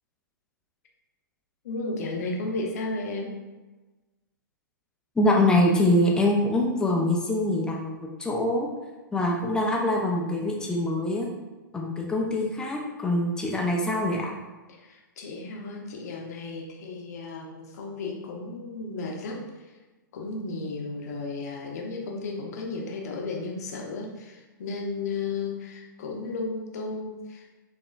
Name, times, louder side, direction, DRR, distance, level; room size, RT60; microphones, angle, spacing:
voice 1, 1.6-3.4 14.7-19.7 20.1-27.5, left 3 dB, 50° left, 0 dB, 0.9 m, -34 dB
voice 2, 5.2-8.7 9.1-11.3 11.7-14.4, left 1 dB, 5° left, -1 dB, 0.6 m, -24 dB
6.6 x 2.8 x 2.5 m, 1.2 s
figure-of-eight pair, 110°, 11 cm